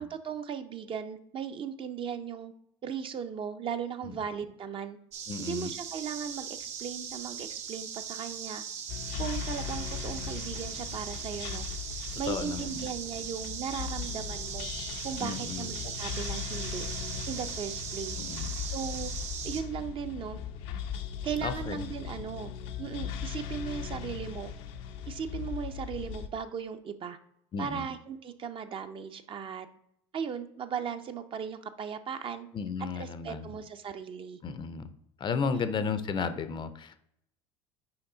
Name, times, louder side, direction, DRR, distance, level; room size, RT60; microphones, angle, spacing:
voice 1, 0.0-2.5 2.8-5.0 5.4-8.6 9.2-11.7 12.2-14.7 15.0-16.8 17.3-18.2 18.6-19.1 19.4-20.4 21.2-22.5 22.8-24.5 25.1-27.2 27.6-29.7 30.1-32.5 33.0-34.4 35.5-35.7, right 7 dB, 40° right, 8 dB, 0.6 m, -37 dB
sound 1, 5.1-19.6, right 7 dB, 55° right, 0.9 m, -39 dB
voice 2, 5.3-5.7 12.1-12.8 15.2-15.7 18.2-18.5 21.4-21.9 27.5-27.9 32.5-33.6 34.4-34.9 35.2-37.1, left 5 dB, 35° left, 12 dB, 0.5 m, -34 dB
sound 2, 8.9-26.3, left 8 dB, 75° left, 0.6 m, -38 dB
5.8 x 4.7 x 3.8 m, 0.73 s
supercardioid pair, 90°, 14 cm